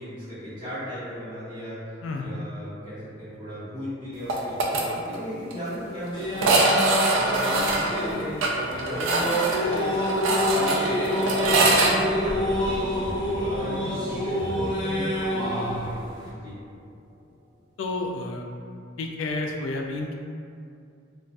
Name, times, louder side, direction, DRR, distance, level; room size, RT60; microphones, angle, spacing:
voice 1, 0.0-6.6 6.9-13.0 13.4-16.0 16.3-16.5, equal, 20° right, -16 dB, 0.6 m, -36 dB
sound 1, 4.3-4.8 5.1-5.2 5.5-5.6 6.3-11.9, right 2 dB, 75° right, 0.3 m, -23 dB
sound 2, 6.1-16.3, equal, 25° left, 0.6 m, -27 dB
sound 3, 13.3-16.9, equal, 55° right, 0.7 m, -37 dB
voice 2, 17.8-18.5 19.0-20.2, left 2 dB, 75° left, 2 dB, 0.3 m, -30 dB
2.3 x 2.1 x 2.5 m, 2.4 s
head